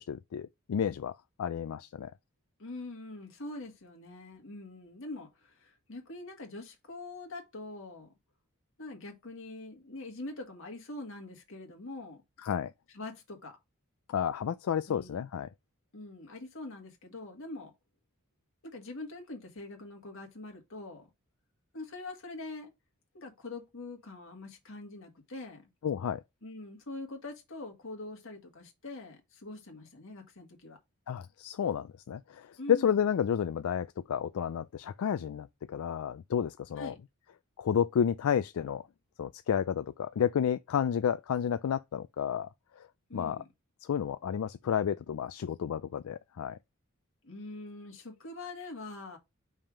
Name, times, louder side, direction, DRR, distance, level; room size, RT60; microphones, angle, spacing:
voice 1, 0.0-2.1 12.4-12.7 14.1-15.5 25.8-26.2 31.1-36.9 37.6-38.8 39.2-42.5 42.8-42.9 43.1-43.4 43.8-46.6, left 8 dB, 85° left, 0.4 m, -31 dB
voice 2, 2.6-8.1 8.8-12.2 12.9-13.6 14.9-15.3 15.9-17.7 18.6-21.1 21.7-22.7 23.1-25.7 26.4-30.8 32.6-33.0 36.8-37.0 43.1-43.5 47.2-49.2, left 2 dB, 65° left, 1.8 m, -44 dB
5.5 x 3.5 x 4.8 m
head